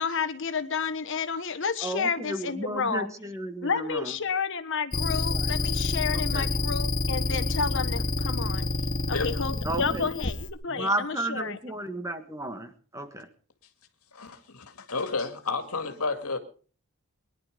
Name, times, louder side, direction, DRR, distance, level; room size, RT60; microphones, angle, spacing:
voice 1, 0.0-3.1 3.6-8.7 9.1-11.6, left 5 dB, 60° left, 1.3 m, -31 dB
voice 2, 1.8-4.2 5.3-5.6 6.1-6.5 9.7-10.1 10.7-13.3, right 1 dB, 15° right, 1.7 m, -33 dB
sound 1, 4.9-10.5, left 2 dB, 40° left, 1.9 m, -28 dB
voice 3, 14.1-16.4, left 4 dB, 80° left, 2.2 m, -31 dB
22.5 x 11.0 x 5.2 m
head